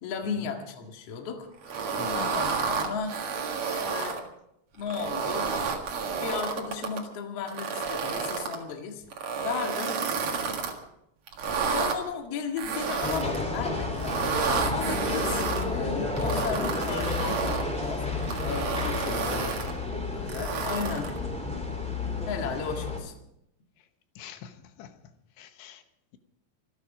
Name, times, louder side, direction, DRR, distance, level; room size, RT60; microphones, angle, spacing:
voice 1, 0.0-1.5 2.1-3.1 3.6-4.2 4.7-5.7 6.1-9.0 9.4-10.0 11.6-19.6 19.9-21.1 22.1-23.2, left 6 dB, 50° left, 2.2 m, -35 dB
sound 1, 1.6-4.2 4.8-7.0 7.5-8.6 9.1-10.7 11.3-12.0 12.6-13.4 13.9-15.6 16.2-17.7 18.2-19.7 20.3-21.2, right 5 dB, 50° right, 2.3 m, -30 dB
voice 2, 2.0-2.4 19.0-19.6 24.2-25.0 25.4-25.8, left 8 dB, 90° left, 3.4 m, -41 dB
sound 2, 13.0-23.0, left 2 dB, ahead, 1.6 m, -31 dB
26.0 x 9.9 x 5.0 m
omnidirectional pair, 5.1 m